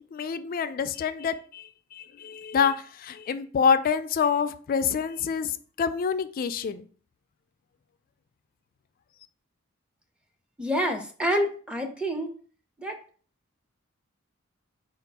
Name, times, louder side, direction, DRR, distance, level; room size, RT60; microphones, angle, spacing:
voice 1, 0.1-5.5 5.8-6.9, left 6 dB, 45° left, 12 dB, 0.3 m, -27 dB
voice 2, 10.6-12.3 12.8-13.0, equal, 5° right, 3 dB, 0.6 m, -27 dB
4.3 x 2.4 x 4.0 m, 0.43 s
head